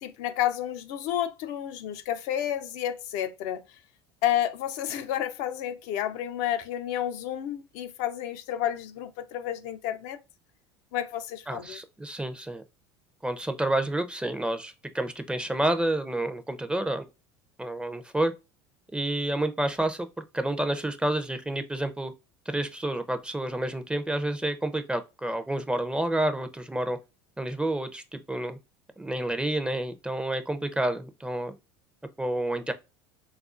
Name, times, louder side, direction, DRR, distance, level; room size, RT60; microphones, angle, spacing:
voice 1, 0.0-3.6 4.2-10.2 10.9-11.8, left 11 dB, 60° left, 0.4 m, -30 dB
voice 2, 11.5-12.6 13.2-17.1 17.6-18.3 18.9-20.1 20.3-22.1 22.5-27.0 27.4-28.6 29.0-31.5 32.2-32.7, right 1 dB, 5° right, 0.5 m, -29 dB
3.5 x 2.4 x 2.4 m
hypercardioid pair, 80°, 13 cm